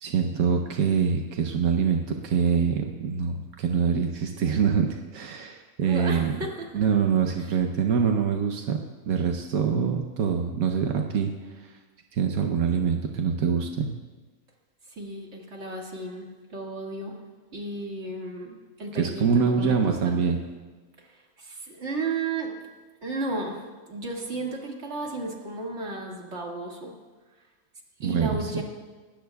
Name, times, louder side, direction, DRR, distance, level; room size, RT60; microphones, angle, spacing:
voice 1, 0.0-6.4 6.7-8.8 9.1-11.3 11.6-11.7 12.1-13.9 19.0-20.4 28.0-28.5, right 6 dB, 85° right, 3 dB, 1.3 m, -24 dB
voice 2, 5.8-6.9 7.4-7.5 14.9-17.2 17.5-20.2 21.0-22.5 23.0-26.9 28.0-28.6, right 2 dB, 55° right, -1 dB, 2.3 m, -34 dB
19.0 x 18.0 x 2.3 m, 1.3 s
omnidirectional pair, 1.5 m